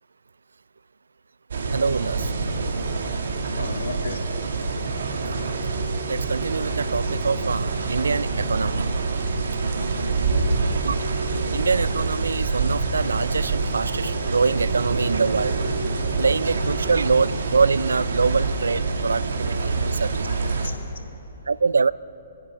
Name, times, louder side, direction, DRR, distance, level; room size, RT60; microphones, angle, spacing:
sound 1, 1.5-20.7, right 3 dB, 75° right, 1.7 m, -26 dB
voice 1, 1.7-2.3 5.3-5.4 6.1-8.8 10.8-11.0 11.5-15.6 16.2-20.3 21.5-21.9, right 4 dB, 90° right, 19 dB, 0.3 m, -24 dB
voice 2, 3.6-4.5 10.3-10.4 19.6-21.2, left 4 dB, 75° left, 3 dB, 1.9 m, -38 dB
25.5 x 10.0 x 4.8 m, 2.9 s
hypercardioid pair, 140°, 0 cm